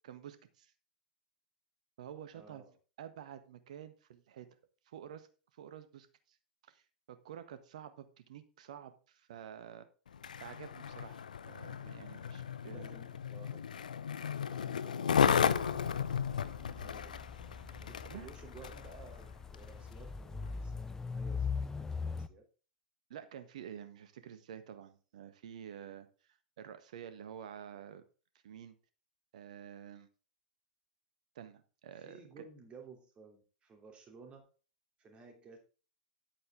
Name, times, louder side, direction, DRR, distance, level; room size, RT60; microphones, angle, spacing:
voice 1, 0.1-0.7 2.0-2.6 3.0-4.5 4.9-5.3 5.5-6.4 6.6-6.8 7.1-9.9 10.4-11.2 11.5-12.9 18.0-18.3 23.1-26.1 26.6-28.0 28.4-28.8 29.3-30.1 31.3-32.4, right 9 dB, 60° right, 11 dB, 1.5 m, -49 dB
voice 2, 2.3-2.7 12.6-13.9 14.5-16.2 16.6-17.2 17.8-22.5 31.9-34.5 35.0-35.6, right 4 dB, 25° right, 3 dB, 3.0 m, -56 dB
Skateboard, 10.1-18.9 19.5-19.7, left 7 dB, 70° left, 0.7 m, -34 dB
sound 1, 15.2-22.3, left 5 dB, 10° left, 0.7 m, -41 dB
11.0 x 8.5 x 3.7 m, 0.35 s
figure-of-eight pair, 95°, 4 cm